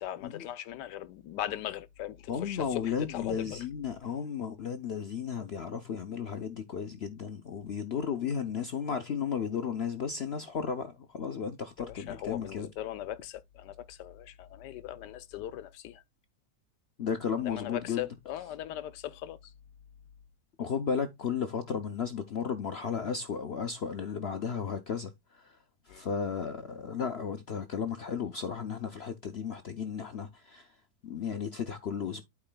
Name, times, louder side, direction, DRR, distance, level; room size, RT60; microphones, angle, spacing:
voice 1, 0.0-3.7 11.8-16.0 17.4-19.5 25.9-26.1, left 12 dB, 80° left, 1.3 m, -39 dB
voice 2, 2.3-12.7 17.0-18.0 20.6-25.6 25.9-30.7 31.0-32.2, left 7 dB, 60° left, 0.7 m, -34 dB
12.0 x 4.8 x 2.2 m
omnidirectional pair, 1.8 m